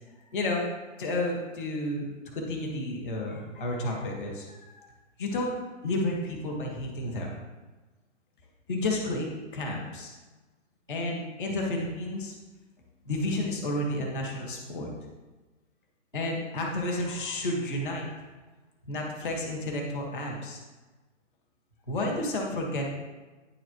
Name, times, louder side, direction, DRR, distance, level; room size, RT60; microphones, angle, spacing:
voice 1, 0.3-0.7 1.0-4.9 5.2-5.5 5.8-7.4 8.7-10.1 10.9-12.3 13.0-14.9 16.1-18.2 18.9-20.6 21.9-22.9, left 1 dB, 5° right, -17 dB, 0.4 m, -31 dB
9.3 x 7.5 x 3.1 m, 1.2 s
hypercardioid pair, 165°, 37 cm